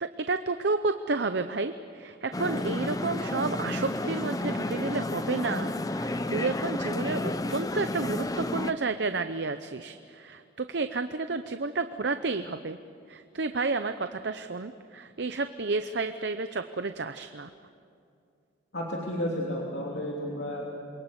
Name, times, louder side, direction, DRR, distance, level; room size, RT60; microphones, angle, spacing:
voice 1, 0.0-12.8 13.1-17.5, right 3 dB, 60° right, 9 dB, 0.7 m, -31 dB
sound 1, 2.3-8.7, left 1 dB, 20° left, 0.7 m, -31 dB
voice 2, 18.7-20.7, equal, 60° left, -3 dB, 3.2 m, -32 dB
28.0 x 23.0 x 8.1 m, 2.5 s
head